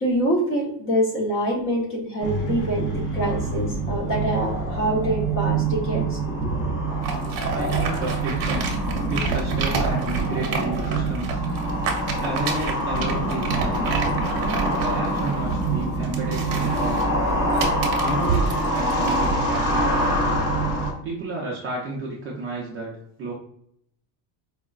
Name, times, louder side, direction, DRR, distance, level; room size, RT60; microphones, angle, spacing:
voice 1, 0.0-6.6, right 1 dB, 25° left, -2 dB, 0.7 m, -25 dB
sound 1, 2.2-20.9, right 2 dB, 40° left, 1.2 m, -25 dB
sound 2, 7.0-19.3, right 5 dB, 65° right, 0.8 m, -30 dB
voice 2, 7.5-8.7 9.1-11.4 12.2-13.9 14.6-17.2 18.0-20.1 21.0-22.9 23.2-23.3, right 2 dB, 30° right, -4 dB, 0.4 m, -31 dB
4.6 x 2.1 x 2.3 m, 0.71 s
cardioid pair, 170°, 49 cm